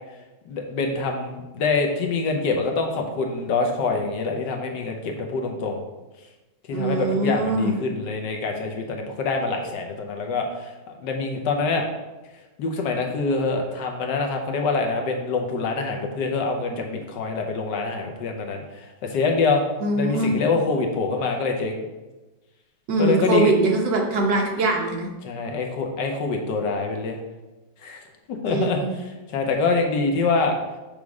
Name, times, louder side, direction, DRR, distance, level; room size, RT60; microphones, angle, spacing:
voice 1, 0.4-5.8 6.7-10.7 11.0-11.8 12.6-19.6 19.9-21.8 23.0-23.5 25.2-27.2 27.8-30.5, left 4 dB, 65° left, 3 dB, 1.3 m, -25 dB
voice 2, 6.7-7.8 19.8-20.4 22.9-25.1 28.5-28.9, right 2 dB, 65° right, 0 dB, 1.5 m, -22 dB
6.3 x 3.6 x 4.7 m, 1.1 s
omnidirectional pair, 2.2 m